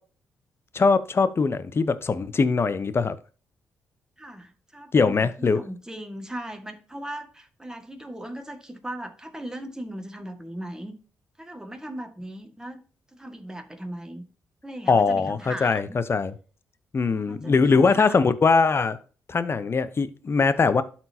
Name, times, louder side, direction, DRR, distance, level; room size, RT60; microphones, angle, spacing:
voice 1, 0.7-3.2 4.9-5.6 14.9-16.3 16.9-19.0 19.3-20.8, left 4 dB, 40° left, 0.8 m, -21 dB
voice 2, 4.2-10.9 11.4-12.8 13.1-14.3 14.6-16.0 17.2-18.2, right 1 dB, 10° right, 1.8 m, -38 dB
12.5 x 4.5 x 2.8 m
hypercardioid pair, 45°, 6 cm